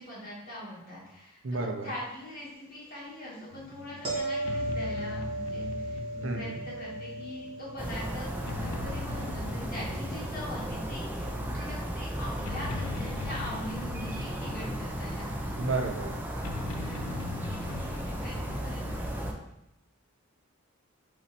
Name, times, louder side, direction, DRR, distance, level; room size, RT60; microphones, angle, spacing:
voice 1, 0.0-15.5 16.7-19.4, left 1 dB, 40° left, -6 dB, 1.6 m, -42 dB
voice 2, 1.4-1.9 6.2-6.6 15.6-16.1, right 3 dB, 60° right, 3 dB, 0.6 m, -31 dB
sound 1, 3.5-19.1, left 4 dB, 70° left, 0.4 m, -42 dB
sound 2, 4.0-11.0 16.3-16.5, right 1 dB, 25° right, 1.1 m, -37 dB
sound 3, 7.8-19.3, right 1 dB, 10° right, 0.4 m, -35 dB
4.0 x 3.1 x 4.1 m, 0.83 s
head